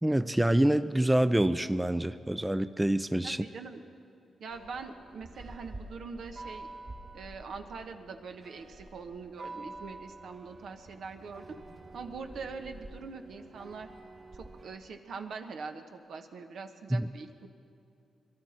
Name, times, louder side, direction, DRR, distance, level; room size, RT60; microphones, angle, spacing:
voice 1, 0.0-3.4 16.9-17.1, right 1 dB, 10° right, 12 dB, 0.5 m, -26 dB
voice 2, 3.2-3.8 4.4-6.7 7.1-11.6 11.9-13.9 14.3-17.5, right 4 dB, 75° right, 5 dB, 1.2 m, -43 dB
sound 1, 4.5-14.8, right 2 dB, 45° right, 2.4 m, -48 dB
22.0 x 12.5 x 4.4 m, 2.6 s
cardioid pair, 65°, 0 cm